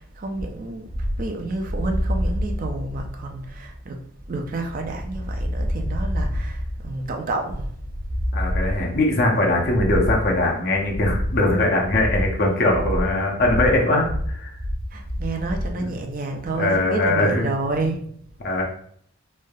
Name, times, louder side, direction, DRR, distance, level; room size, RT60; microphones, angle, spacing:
voice 1, 0.0-4.0 4.3-7.7 14.9-18.1, right 2 dB, 45° right, 0.4 m, -29 dB
sound 1, 0.9-15.8, equal, 75° right, 0.8 m, -28 dB
voice 2, 8.3-14.5 15.8-15.9 16.6-17.5 18.4-18.6, left 2 dB, 50° left, 0.7 m, -21 dB
3.2 x 2.7 x 2.2 m
head